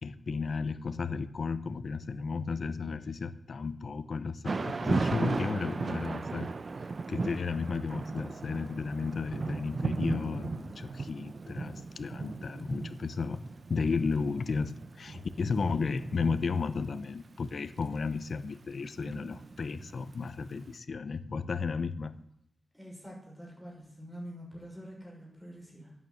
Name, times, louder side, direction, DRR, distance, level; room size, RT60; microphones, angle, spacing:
voice 1, 0.0-6.5 7.1-22.1, left 4 dB, 70° left, 13 dB, 0.8 m, -33 dB
voice 2, 2.0-2.5 15.6-15.9 22.7-26.0, equal, 5° right, -2 dB, 6.0 m, -47 dB
Thunder / Rain, 4.4-20.5, right 4 dB, 60° right, 0.7 m, -37 dB
11.0 x 9.6 x 7.8 m, 0.75 s
wide cardioid pair, 75°, 0 cm